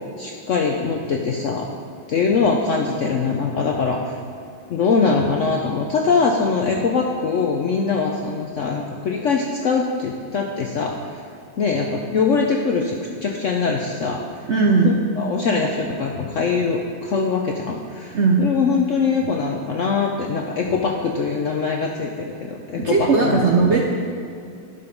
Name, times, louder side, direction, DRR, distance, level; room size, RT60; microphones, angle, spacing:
voice 1, 0.2-1.7 2.1-4.2 4.7-11.0 11.6-14.2 14.8-23.8, left 4 dB, 65° left, 1 dB, 0.7 m, -22 dB
voice 2, 14.5-15.0 18.1-18.4 22.8-23.8, right 4 dB, 60° right, 0 dB, 0.7 m, -17 dB
11.5 x 5.2 x 5.3 m, 2.5 s
omnidirectional pair, 2.0 m